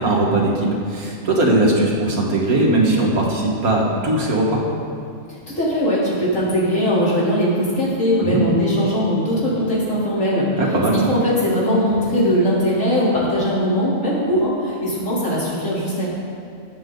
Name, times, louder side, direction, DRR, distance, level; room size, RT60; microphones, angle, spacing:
voice 1, 0.0-4.6 8.2-8.4 10.6-10.9, right 2 dB, 75° right, -2 dB, 2.4 m, -19 dB
voice 2, 5.6-16.1, equal, 60° left, -8 dB, 4.0 m, -20 dB
21.5 x 8.3 x 4.0 m, 2.4 s
omnidirectional pair, 1.5 m